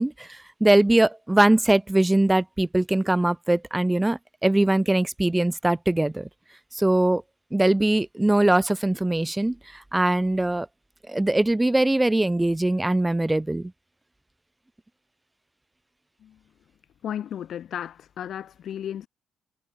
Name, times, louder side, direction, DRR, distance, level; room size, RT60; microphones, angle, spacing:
voice 1, 0.0-6.3 6.7-7.2 7.5-10.7 11.1-13.7, right 1 dB, 10° right, 0.6 m, -21 dB
voice 2, 17.0-19.1, left 10 dB, 55° left, 1.5 m, -34 dB
cardioid pair, 155°, 0 cm